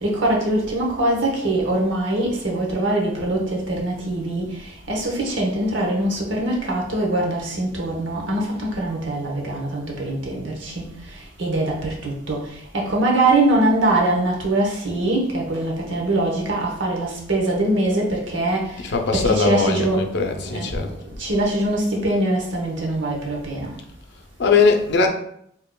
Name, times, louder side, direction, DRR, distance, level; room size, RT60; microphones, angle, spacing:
voice 1, 0.0-4.5 4.9-10.8 11.4-12.4 12.7-18.7 19.1-20.0 20.4-20.9 21.2-23.7, right 1 dB, 70° right, -1 dB, 1.0 m, -22 dB
voice 2, 18.8-20.9 24.4-25.1, left 4 dB, 60° left, 3 dB, 0.5 m, -20 dB
4.7 x 2.9 x 2.2 m, 0.71 s
head